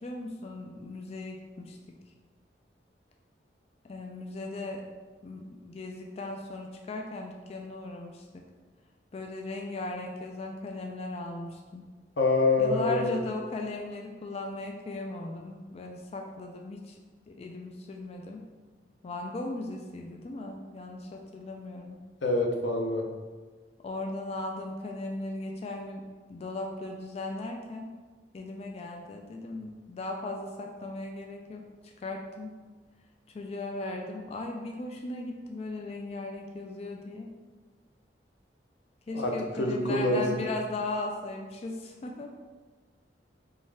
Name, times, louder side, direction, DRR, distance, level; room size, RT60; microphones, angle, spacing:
voice 1, 0.0-2.0 3.8-4.8 5.2-8.4 9.1-11.9 12.6-17.0 17.3-18.4 19.0-22.0 23.8-26.0 26.3-27.9 28.3-32.5 33.3-37.3 39.1-42.3, left 2 dB, 35° left, 2 dB, 0.3 m, -37 dB
voice 2, 12.2-13.1 22.2-23.0 39.1-40.2, left 2 dB, 90° left, 2 dB, 0.7 m, -26 dB
5.2 x 2.4 x 3.4 m, 1.4 s
head